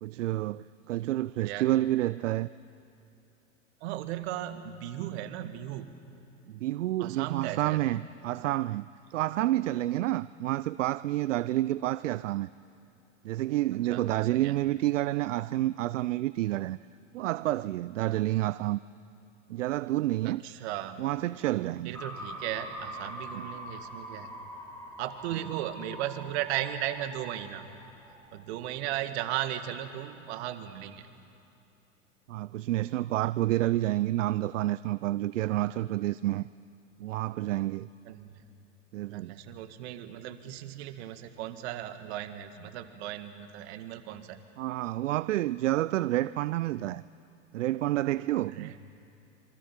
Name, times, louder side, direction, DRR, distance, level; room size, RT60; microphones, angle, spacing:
voice 1, 0.0-2.5 6.5-12.5 13.2-16.8 17.1-18.8 19.5-20.4 21.0-22.0 23.3-23.5 32.3-36.5 37.0-37.9 38.9-39.3 44.6-47.0 47.5-48.7, right 15 dB, 75° right, 0.5 m, -29 dB
voice 2, 3.8-5.9 7.0-7.8 13.9-14.0 14.3-14.5 20.2-21.0 21.9-24.3 25.0-27.6 28.3-31.0 38.1-38.3 39.1-44.4 48.6-48.7, right 12 dB, 55° right, 1.9 m, -36 dB
sound 1, 21.9-28.4, equal, 5° left, 3.9 m, -44 dB
26.5 x 24.0 x 5.9 m
hypercardioid pair, 95°, 38 cm